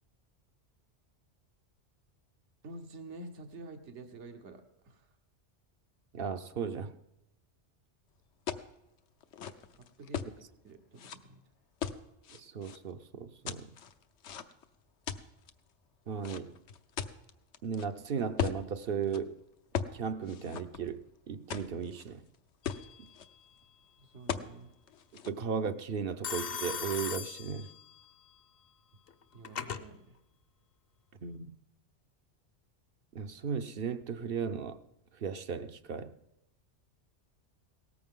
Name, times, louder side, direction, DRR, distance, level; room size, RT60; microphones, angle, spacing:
voice 1, 2.6-5.1 9.8-11.4 24.0-24.7 29.3-30.2, right 2 dB, 80° right, 1.5 m, -49 dB
voice 2, 6.1-6.9 12.3-13.7 16.1-16.5 17.6-19.4 19.9-22.2 23.0-23.1 25.2-27.7 31.2-31.5 33.1-34.8 35.2-36.1, right 6 dB, 60° right, 0.9 m, -36 dB
sound 1, 8.5-8.7 9.2-10.3 11.0-11.2 11.8-12.8 13.5-14.6 15.1-15.5 16.2-17.9 18.4-18.6 19.0-19.2 19.7-20.0 20.3-21.1 21.5-22.0 22.3-22.4 22.6-23.2 24.3-24.5 24.9-25.3, left 8 dB, 80° left, 1.1 m, -37 dB
Telephone, 22.6-23.2 26.2-28.1 29.1-29.9, left 7 dB, 60° left, 1.0 m, -39 dB
18.0 x 14.0 x 3.7 m
omnidirectional pair, 1.2 m